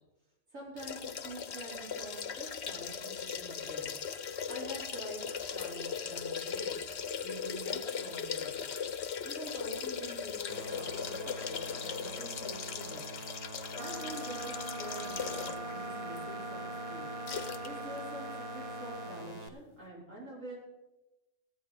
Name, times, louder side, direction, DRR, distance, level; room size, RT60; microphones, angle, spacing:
voice 1, 0.5-3.9 4.5-6.8 7.2-8.6 9.2-13.0 13.8-17.1 17.6-20.6, right 1 dB, 80° right, -5 dB, 4.9 m, -46 dB
sound 1, 0.8-15.7 16.2-16.3 17.3-17.7 18.0-18.1, left 7 dB, 60° left, 1.0 m, -38 dB
sound 2, 10.5-19.5, right 2 dB, 35° right, 1.0 m, -46 dB
sound 3, 13.7-19.3, right 1 dB, 50° right, 0.4 m, -42 dB
15.5 x 9.1 x 5.1 m, 0.99 s
omnidirectional pair, 1.3 m